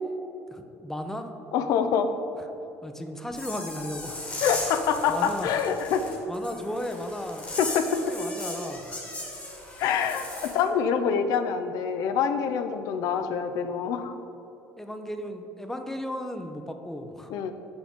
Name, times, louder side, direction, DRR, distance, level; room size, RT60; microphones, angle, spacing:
voice 1, 0.5-1.3 2.8-4.2 5.1-5.6 6.3-7.5 8.1-9.0 14.8-17.3, equal, 5° left, 6 dB, 0.5 m, -35 dB
voice 2, 1.5-2.1 4.4-6.2 7.6-8.1 9.8-14.1 17.3-17.5, left 7 dB, 70° left, 8 dB, 0.5 m, -26 dB
sound 1, 3.3-10.6, left 2 dB, 25° left, 1.4 m, -37 dB
6.2 x 5.6 x 3.6 m, 3.0 s
cardioid pair, 115°, 6 cm